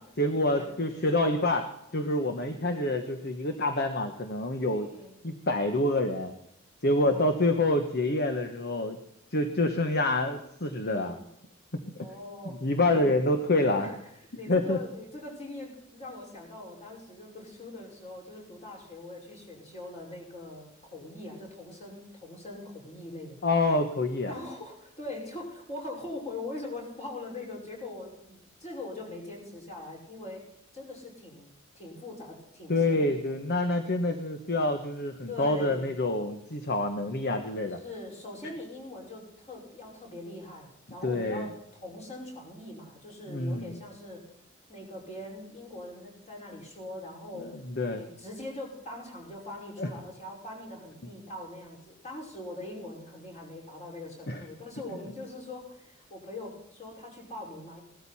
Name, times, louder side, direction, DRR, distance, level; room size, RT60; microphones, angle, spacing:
voice 1, 0.2-1.7 1.9-4.9 5.2-6.3 6.8-9.0 9.3-11.1 12.6-13.9 14.5-14.8 23.4-24.3 32.7-37.8 41.0-41.5 43.3-43.7 47.4-47.5 47.8-48.0 49.8-49.9 54.3-54.4, left 2 dB, 50° left, 6 dB, 1.2 m, -27 dB
voice 2, 2.4-2.7 4.7-5.2 7.0-7.4 10.8-11.3 12.0-12.6 12.8-13.3 13.7-13.9 14.3-23.4 24.3-30.4 30.7-31.5 31.7-33.2 35.3-35.8 37.8-41.5 41.8-44.2 44.7-47.5 47.9-57.8, left 2 dB, 35° left, -1 dB, 5.5 m, -42 dB
17.0 x 13.0 x 4.3 m, 0.76 s
head